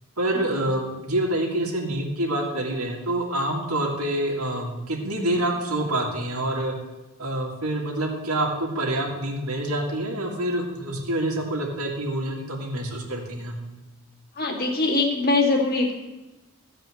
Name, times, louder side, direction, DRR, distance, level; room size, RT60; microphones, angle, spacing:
voice 1, 0.2-6.7 7.2-13.6, right 1 dB, 85° right, 0 dB, 2.2 m, -27 dB
voice 2, 14.4-15.9, left 3 dB, 40° left, -1 dB, 2.0 m, -22 dB
14.5 x 4.9 x 7.6 m, 1.1 s
head